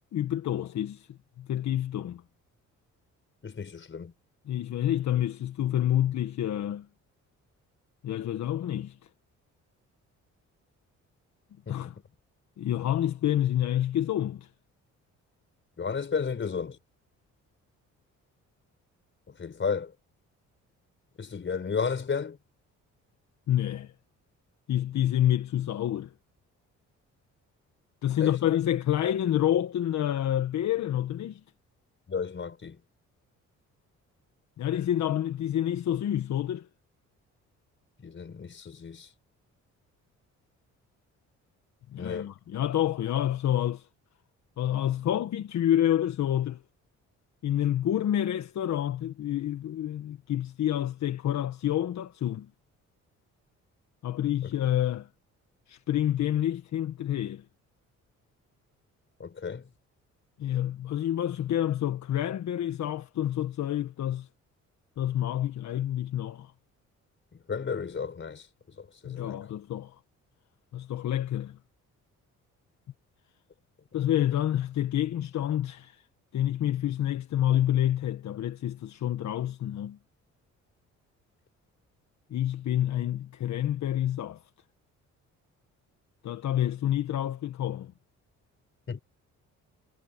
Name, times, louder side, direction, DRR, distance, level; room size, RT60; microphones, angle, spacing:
voice 1, 0.1-2.2 4.5-6.9 8.0-9.0 11.7-12.0 12.6-14.5 23.5-23.9 24.7-26.1 28.0-31.4 34.6-36.7 41.9-43.9 44.6-46.6 47.4-52.5 54.0-55.1 55.7-57.4 60.4-64.3 65.0-66.5 69.0-69.9 70.7-71.6 73.9-76.0 76.3-80.0 82.3-84.4 86.2-87.9, left 11 dB, 65° left, 1.4 m, -28 dB
voice 2, 3.4-4.1 11.7-11.9 15.8-16.8 19.3-19.9 21.2-22.4 28.2-28.4 32.1-32.8 38.0-39.1 42.0-42.3 54.4-54.5 59.2-59.7 67.5-69.4 88.9-89.0, left 5 dB, 40° left, 5.0 m, -33 dB
cardioid pair, 90°, 30 cm